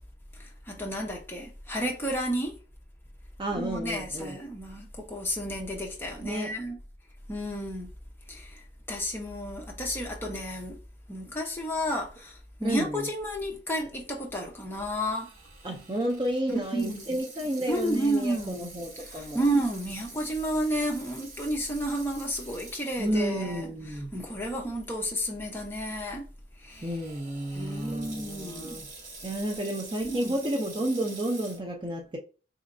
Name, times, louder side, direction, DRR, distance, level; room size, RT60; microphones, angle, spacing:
voice 1, 0.4-2.5 3.5-6.8 7.3-7.9 8.3-8.6 8.9-10.8 11.1-15.3 16.7-17.2 17.7-18.7 19.0-23.7 24.1-26.3 26.6-26.9 27.5-28.8 30.0-30.4, equal, 10° left, 0.7 m, -31 dB
voice 2, 3.4-4.4 6.2-6.5 12.6-13.1 15.6-19.4 23.0-24.1 26.8-28.9 29.2-32.2, right 1 dB, 25° right, 0.5 m, -31 dB
Water tap faucet / Sink (filling or washing), 15.1-23.5 24.0-24.1 24.8-25.1 26.7-31.6, right 3 dB, 40° right, 1.0 m, -46 dB
3.9 x 3.1 x 2.6 m
head